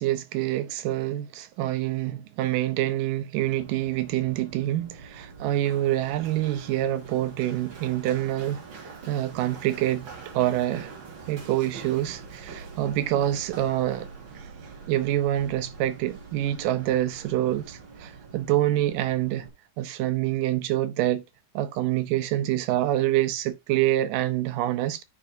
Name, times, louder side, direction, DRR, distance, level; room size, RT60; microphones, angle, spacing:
voice 1, 0.0-8.6 9.1-10.1 10.3-10.9 11.3-14.1 14.4-14.5 14.9-19.5 19.8-21.2 21.6-25.0, right 14 dB, 85° right, 2.4 m, -26 dB
Run, 3.4-19.5, right 4 dB, 45° right, 2.1 m, -44 dB
11.5 x 5.0 x 2.6 m
omnidirectional pair, 3.8 m